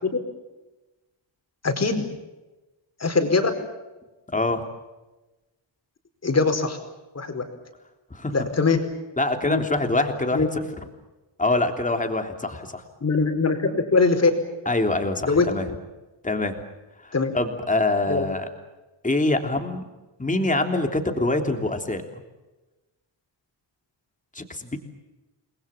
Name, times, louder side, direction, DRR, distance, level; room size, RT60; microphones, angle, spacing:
voice 1, 1.6-2.0 3.0-3.5 6.2-6.8 7.1-7.4 8.3-8.8 9.4-9.6 10.3-10.5 13.0-14.3 15.2-15.5 17.1-17.3 18.1-18.2, left 4 dB, 30° left, 6 dB, 4.7 m, -21 dB
voice 2, 4.3-4.6 8.1-8.3 9.2-10.6 11.4-12.8 14.6-15.6 16.2-16.5 17.0-18.5 19.0-19.8 20.2-22.0 24.3-24.8, left 2 dB, 15° left, 5 dB, 3.4 m, -24 dB
29.5 x 21.5 x 7.3 m, 1.1 s
wide cardioid pair, 140°, 47 cm